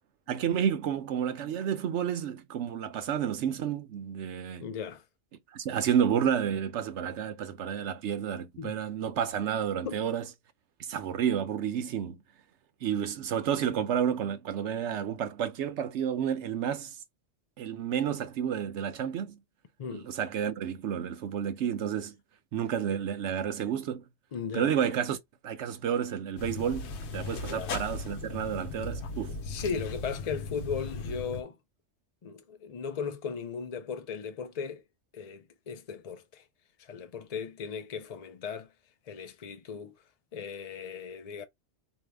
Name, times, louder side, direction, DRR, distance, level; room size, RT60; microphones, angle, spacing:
voice 1, 0.3-4.7 5.5-10.2 10.8-12.2 12.8-17.0 17.6-19.4 19.9-22.1 22.5-24.0 24.5-25.2 25.4-29.3, right 8 dB, 75° right, 0.9 m, -30 dB
voice 2, 4.6-5.0 8.6-8.8 9.8-10.0 19.8-20.1 24.3-24.8 27.4-27.8 29.4-31.6 32.2-34.8 35.1-36.4 36.8-38.7 39.1-40.0 40.3-41.4, left 6 dB, 50° left, 0.4 m, -37 dB
sound 1, 26.4-31.4, left 3 dB, 70° left, 1.0 m, -37 dB
4.2 x 2.7 x 3.4 m
omnidirectional pair, 1.2 m